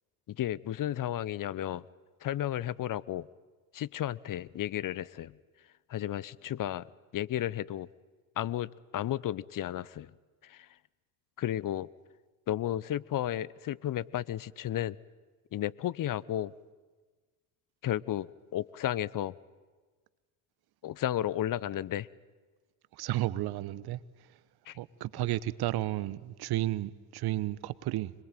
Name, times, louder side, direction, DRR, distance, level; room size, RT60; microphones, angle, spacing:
voice 1, 0.3-1.8 2.2-3.3 3.7-5.4 5.9-6.9 7.1-7.9 8.4-10.1 10.4-10.7 11.4-11.9 12.5-15.0 15.5-16.5 17.8-19.3 20.8-22.1 24.7-24.8, left 12 dB, 50° left, 0.9 m, -33 dB
voice 2, 22.9-24.0 24.7-28.1, right 15 dB, 60° right, 1.1 m, -32 dB
25.5 x 22.0 x 9.2 m
hypercardioid pair, 60°, 42 cm